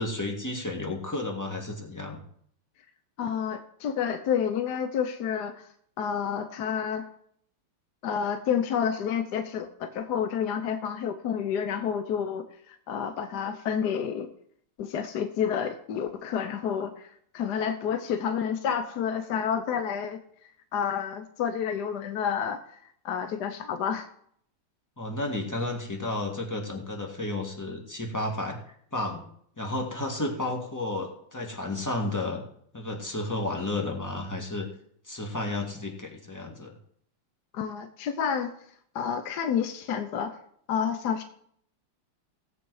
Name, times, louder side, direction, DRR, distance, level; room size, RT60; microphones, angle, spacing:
voice 1, 0.0-2.2 25.0-28.6 28.9-29.2 29.6-32.4 32.7-34.7 35.1-36.7, left 2 dB, 10° left, 1 dB, 1.7 m, -32 dB
voice 2, 3.2-5.7 6.0-7.1 8.0-14.3 14.8-17.1 17.3-20.2 20.7-22.6 23.0-24.1 37.5-38.5 38.9-40.4 40.7-41.2, left 7 dB, 60° left, 9 dB, 1.2 m, -29 dB
17.0 x 8.0 x 4.8 m, 0.66 s
omnidirectional pair, 2.4 m